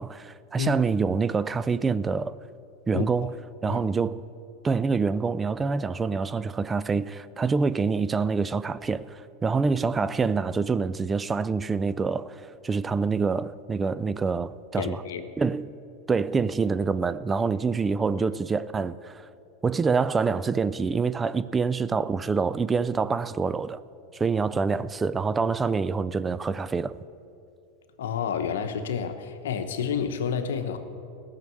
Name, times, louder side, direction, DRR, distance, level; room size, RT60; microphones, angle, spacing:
voice 1, 0.0-2.4 2.9-3.3 3.6-4.2 4.6-15.0 15.4-15.7 16.1-19.3 19.6-23.8 24.1-27.0, right 4 dB, 20° right, 0.4 m, -26 dB
voice 2, 14.8-15.3 28.0-30.8, left 7 dB, 85° left, 1.1 m, -29 dB
17.5 x 6.5 x 7.7 m
hypercardioid pair, 115°, 0 cm